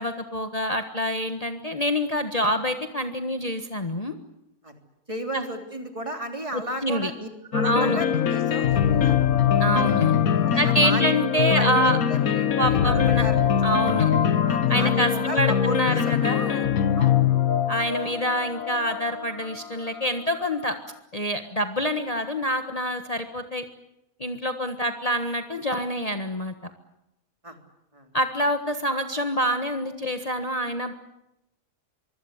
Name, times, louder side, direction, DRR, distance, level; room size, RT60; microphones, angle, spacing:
voice 1, 0.0-4.1 5.3-5.4 6.5-7.1 7.6-8.0 9.6-10.2 10.6-12.0 12.6-13.3 13.6-14.1 14.7-16.7 17.7-20.8 21.1-23.6 24.2-26.7 28.1-30.9, equal, 25° left, 6 dB, 1.5 m, -26 dB
voice 2, 5.1-9.1 9.7-10.0 10.4-11.1 11.5-13.7 14.4-16.1 17.0-17.2 27.4-27.6 27.9-28.1, right 1 dB, 25° right, 4 dB, 3.4 m, -34 dB
trespass theme, 7.5-20.4, left 9 dB, 85° left, 1.6 m, -23 dB
24.5 x 24.5 x 8.2 m, 0.87 s
omnidirectional pair, 1.4 m